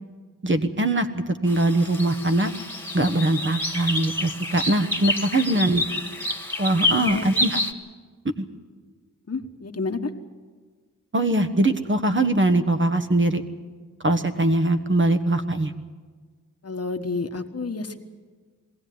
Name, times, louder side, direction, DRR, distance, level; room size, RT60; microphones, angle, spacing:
voice 1, 0.4-2.5 2.9-5.8 6.6-7.6 8.4-8.5 11.1-13.4 14.0-15.7, right 2 dB, 35° right, 7 dB, 1.4 m, -22 dB
sound 1, 1.5-7.7, left 2 dB, 5° left, 1.8 m, -28 dB
voice 2, 5.5-5.8 7.0-7.3 9.3-10.1 16.6-18.0, left 3 dB, 50° left, 6 dB, 1.4 m, -30 dB
21.5 x 16.0 x 9.4 m, 1.5 s
cardioid pair, 55°, 32 cm